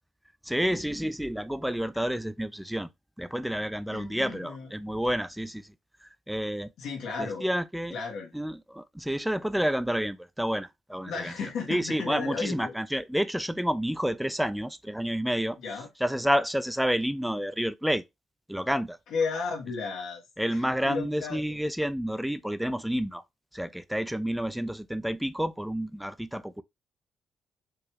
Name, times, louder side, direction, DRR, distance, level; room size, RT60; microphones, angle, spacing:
voice 1, 0.5-2.9 3.2-5.6 6.3-6.7 7.2-8.0 8.3-11.3 11.7-15.6 16.0-18.0 18.5-19.0 20.4-23.2 23.5-26.6, equal, 5° right, 0.3 m, -29 dB
voice 2, 3.9-4.7 6.8-7.5 7.9-8.3 11.0-12.7 15.6-15.9 19.1-21.6, left 5 dB, 80° left, 1.4 m, -34 dB
4.6 x 2.3 x 3.1 m
cardioid pair, 90°, 0 cm